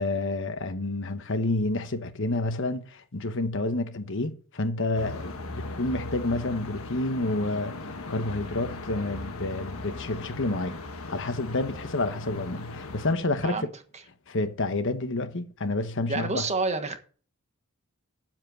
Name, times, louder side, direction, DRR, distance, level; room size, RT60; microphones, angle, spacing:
voice 1, 0.0-10.8 11.1-13.7 14.3-16.5, left 2 dB, 60° left, 1.1 m, -29 dB
sound 1, 4.9-13.1, left 2 dB, 80° left, 1.4 m, -38 dB
voice 2, 16.1-17.0, right 3 dB, 30° right, 1.4 m, -28 dB
7.4 x 7.4 x 7.6 m
head